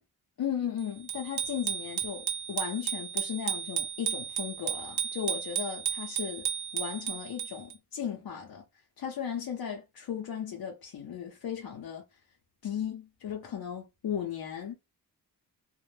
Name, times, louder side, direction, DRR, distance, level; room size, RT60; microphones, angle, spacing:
voice 1, 0.4-8.6 9.0-12.0 12.6-14.7, left 8 dB, 65° left, 0.7 m, -36 dB
Bicycle bell, 1.1-7.7, right 9 dB, 85° right, 0.7 m, -34 dB
2.2 x 2.0 x 3.1 m
wide cardioid pair, 125°, 39 cm